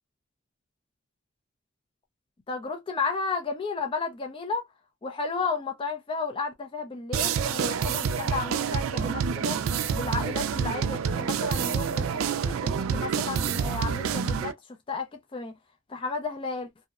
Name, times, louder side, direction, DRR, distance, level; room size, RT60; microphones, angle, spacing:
voice 1, 2.5-4.6 5.0-9.6 9.9-14.5 14.9-15.5 15.9-16.7, left 4 dB, 25° left, 0.4 m, -33 dB
sound 1, 7.1-14.5, right 7 dB, 85° right, 0.3 m, -28 dB
2.7 x 2.0 x 2.3 m
head